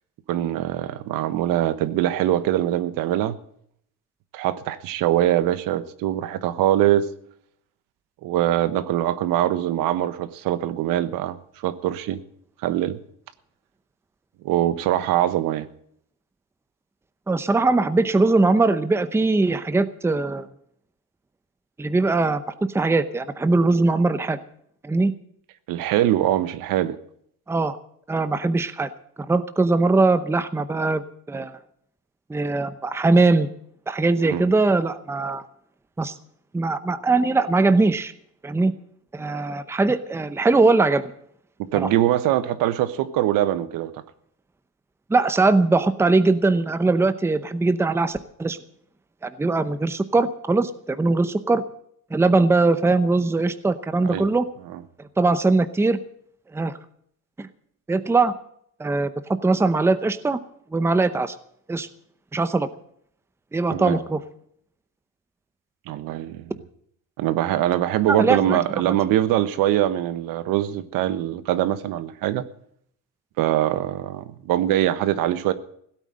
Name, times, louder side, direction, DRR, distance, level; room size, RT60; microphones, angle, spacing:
voice 1, 0.3-3.4 4.3-7.1 8.2-11.4 11.6-12.2 12.6-13.0 14.4-15.7 25.7-27.0 34.2-34.4 41.7-44.0 54.0-54.2 63.7-64.0 65.9-66.5 67.2-72.4 73.4-75.5, right 12 dB, 75° right, 1.2 m, -23 dB
voice 2, 17.3-20.5 21.8-22.4 22.7-24.4 24.8-25.1 27.5-27.8 28.1-28.9 29.3-31.5 32.3-33.5 33.9-35.5 36.0-36.1 36.5-38.1 38.4-38.7 39.1-41.1 41.8-41.9 45.1-48.6 49.2-51.6 52.1-54.4 55.2-56.0 56.5-56.8 57.4-57.5 57.9-58.3 58.8-59.1 59.4-60.4 60.7-61.3 61.7-61.9 62.3-62.7 63.5-64.2 68.1-68.6, right 3 dB, 5° right, 0.7 m, -21 dB
16.5 x 9.0 x 7.6 m
cardioid pair, 140°, 34 cm